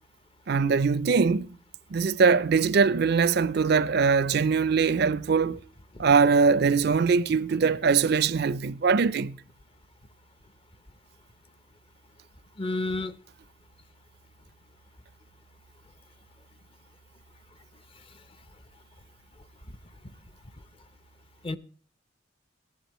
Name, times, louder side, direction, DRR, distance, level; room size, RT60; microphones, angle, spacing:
voice 1, 0.5-1.5 1.9-5.6 6.0-9.4, right 5 dB, 55° right, 0.5 m, -22 dB
voice 2, 12.6-13.1 21.4-21.6, left 2 dB, 30° left, 0.6 m, -29 dB
16.5 x 11.0 x 3.0 m
head